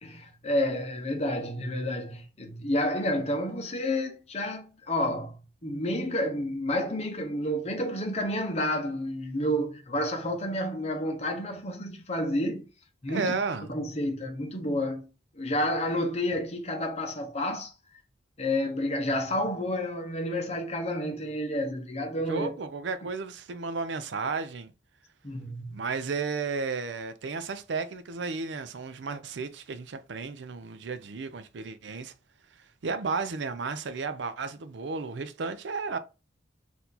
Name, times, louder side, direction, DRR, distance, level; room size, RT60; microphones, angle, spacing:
voice 1, 0.0-5.4 5.6-12.7 13.0-13.4 13.7-15.1 15.4-17.7 18.4-22.5 25.2-25.8, left 1 dB, 35° left, 0.9 m, -30 dB
voice 2, 13.1-13.7 22.3-24.7 25.7-32.1 32.8-36.0, right 4 dB, 70° right, 0.5 m, -33 dB
4.4 x 2.7 x 4.0 m
head